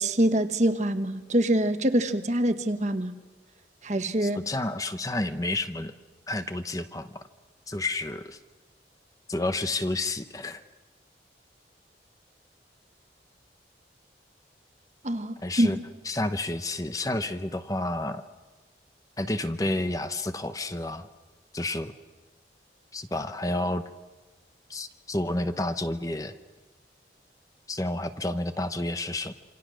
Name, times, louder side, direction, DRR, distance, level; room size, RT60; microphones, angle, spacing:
voice 1, 0.0-3.2 3.8-4.4 15.0-15.8, right 1 dB, 40° right, 1.3 m, -25 dB
voice 2, 4.2-5.9 6.3-7.3 7.7-8.4 9.3-10.6 15.4-15.8 16.0-18.2 19.2-21.1 21.5-21.9 22.9-23.8 24.7-26.4 27.7-29.3, left 2 dB, 20° left, 0.8 m, -30 dB
27.5 x 26.5 x 6.3 m
head